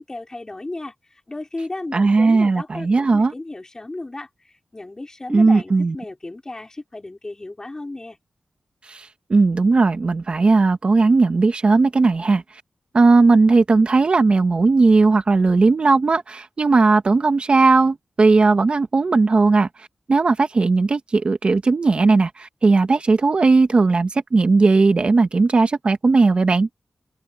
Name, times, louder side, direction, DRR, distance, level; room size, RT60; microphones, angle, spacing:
voice 1, 0.0-8.2, left 2 dB, 25° left, 4.7 m, -34 dB
voice 2, 1.9-3.3 5.3-5.9 8.9-12.4 12.9-26.7, right 3 dB, 45° right, 1.4 m, -17 dB
wide cardioid pair, 120°, 3 cm